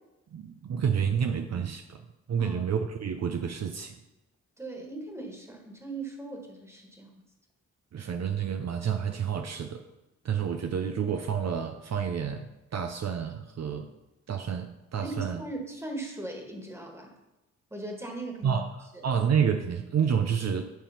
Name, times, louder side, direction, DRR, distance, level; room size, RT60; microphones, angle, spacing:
voice 1, 0.3-4.0 7.9-9.8 10.2-12.5 12.7-13.9 14.3-15.4 18.4-20.6, right 7 dB, 60° right, 6 dB, 0.6 m, -29 dB
voice 2, 4.6-7.2 15.0-17.1 17.7-18.6 18.9-19.1, right 2 dB, 10° right, 2 dB, 1.6 m, -39 dB
10.0 x 3.5 x 5.7 m, 0.98 s
cardioid pair, 90°, 30 cm